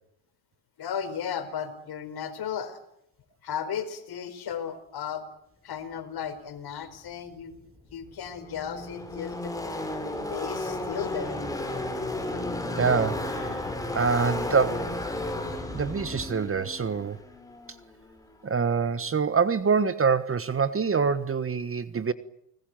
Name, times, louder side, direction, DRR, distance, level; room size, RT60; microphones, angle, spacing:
voice 1, 0.8-2.8 3.4-5.2 5.6-7.5 7.9-9.5 10.0-11.3, left 8 dB, 55° left, 4.8 m, -35 dB
Car passing by / Race car auto racing, 7.5-7.6 7.8-18.4, left 1 dB, 5° left, 6.3 m, -33 dB
voice 2, 12.8-13.7 13.9-15.0 15.7-17.2 18.4-22.1, right 5 dB, 30° right, 1.4 m, -25 dB
30.0 x 20.5 x 9.2 m
supercardioid pair, 90°, 46 cm